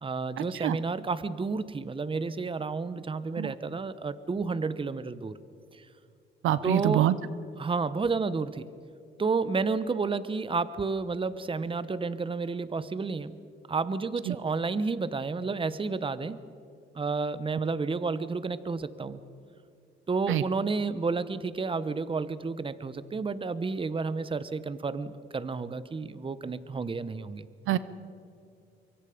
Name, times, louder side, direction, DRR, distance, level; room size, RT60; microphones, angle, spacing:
voice 1, 0.0-5.4 6.6-7.1 7.6-8.7 9.2-13.4 13.7-16.4 16.9-19.2 20.1-27.5, right 4 dB, 25° right, 15 dB, 1.0 m, -31 dB
voice 2, 6.4-7.2 14.3-14.4 20.3-20.4 27.7-27.8, right 12 dB, 85° right, 16 dB, 0.8 m, -25 dB
24.5 x 24.0 x 5.1 m, 2.5 s
cardioid pair, 90°, 20 cm